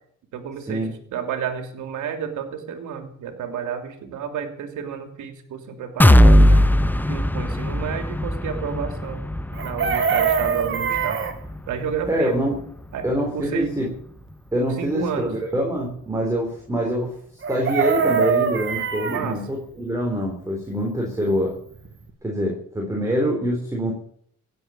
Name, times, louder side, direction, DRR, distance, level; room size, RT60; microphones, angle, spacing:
voice 1, 0.3-0.8 1.1-6.6 7.1-11.2 11.7-12.4 12.9-13.1 13.3-13.7 14.8-15.3 19.1-19.4, right 7 dB, 80° right, 6 dB, 2.9 m, -30 dB
sound 1, 6.0-13.8 14.2-14.3 14.7-14.8, left 1 dB, 5° left, 0.7 m, -20 dB
Chicken rooster, 9.5-11.4 17.4-19.2 21.5-21.6 21.8-22.1, right 6 dB, 40° right, 1.9 m, -23 dB
voice 2, 12.1-12.6 13.0-13.9 14.5-17.2 17.5-21.6 22.2-23.9, equal, 10° right, -1 dB, 3.8 m, -25 dB
17.0 x 8.0 x 8.6 m, 0.64 s
cardioid pair, 90°, 30 cm